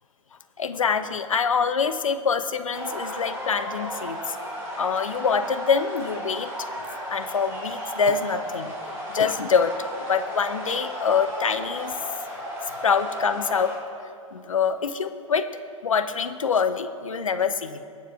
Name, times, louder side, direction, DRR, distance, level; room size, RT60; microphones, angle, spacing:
voice 1, 0.6-4.4 4.8-6.5 7.1-8.7 9.1-9.7 10.1-11.9 12.8-13.8 14.3-15.5 15.8-17.8, left 6 dB, 70° left, 11 dB, 0.7 m, -25 dB
sound 1, 2.7-13.7, equal, 15° right, 3.2 m, -34 dB
21.5 x 7.3 x 3.5 m, 2.4 s
figure-of-eight pair, 105°, 17 cm